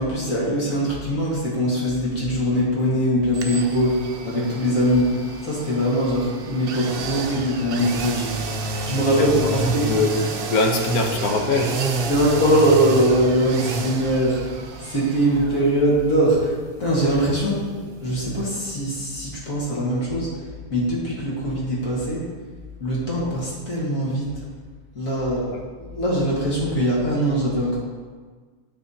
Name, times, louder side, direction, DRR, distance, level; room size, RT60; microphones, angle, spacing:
voice 1, 0.0-10.0 12.0-16.5 16.8-22.2 22.8-24.3 25.0-25.5 25.9-27.8, equal, 65° left, -5 dB, 2.0 m, -22 dB
sound 1, 3.3-19.1 19.4-19.5, right 4 dB, 60° right, 0.6 m, -31 dB
voice 2, 9.1-11.7, left 2 dB, 80° left, 2 dB, 1.3 m, -22 dB
11.0 x 4.2 x 2.7 m, 1.5 s
omnidirectional pair, 1.6 m